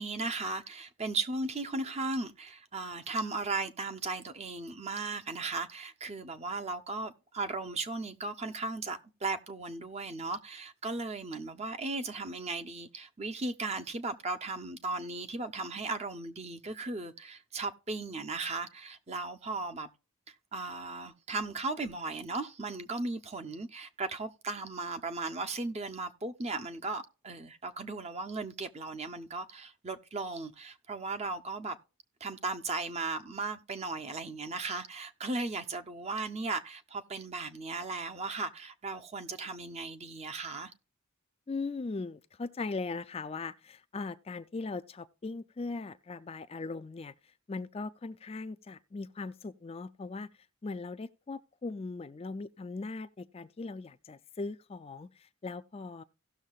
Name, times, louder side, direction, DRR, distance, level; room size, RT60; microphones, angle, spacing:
voice 1, 0.0-19.9 20.3-31.8 32.2-40.7, right 3 dB, 30° right, 0.7 m, -36 dB
voice 2, 41.5-50.3 50.6-56.0, left 3 dB, 25° left, 0.3 m, -39 dB
17.0 x 6.4 x 2.3 m
head